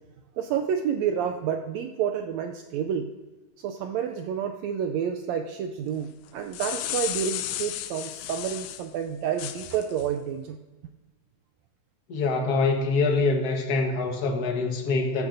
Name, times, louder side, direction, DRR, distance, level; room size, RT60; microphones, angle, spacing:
voice 1, 0.4-3.1 3.6-10.6, right 8 dB, 80° right, 6 dB, 1.6 m, -29 dB
sound 1, 6.3-8.9 9.4-10.1, left 13 dB, 80° left, 1.6 m, -33 dB
voice 2, 12.1-15.3, left 3 dB, 50° left, 2 dB, 1.1 m, -25 dB
14.5 x 14.0 x 2.6 m, 1.2 s
omnidirectional pair, 3.5 m